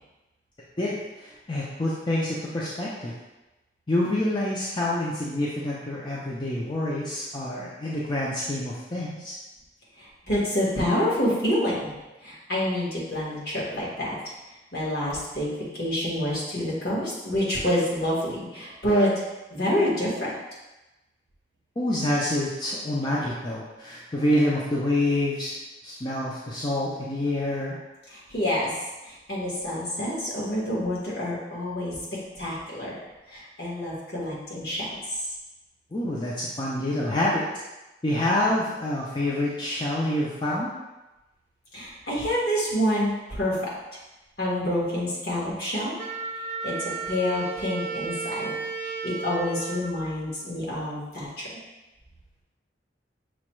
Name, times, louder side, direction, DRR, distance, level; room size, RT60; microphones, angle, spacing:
voice 1, 0.8-3.1 3.9-9.3 21.8-25.5 25.8-27.8 35.9-37.4 38.0-40.7, left 1 dB, 25° left, -6 dB, 0.5 m, -27 dB
voice 2, 10.0-11.9 12.2-14.1 14.7-15.5 15.7-19.1 19.5-20.3 28.1-28.7 29.0-32.0 32.4-32.9 33.3-34.9 41.7-43.5 44.4-45.9 46.6-46.7 47.0-48.5 48.8-51.5, equal, 60° left, -6 dB, 1.5 m, -27 dB
Wind instrument woodwind instrument, 46.0-50.8, right 4 dB, 40° right, 0.4 m, -34 dB
6.1 x 2.3 x 3.1 m, 1.0 s
head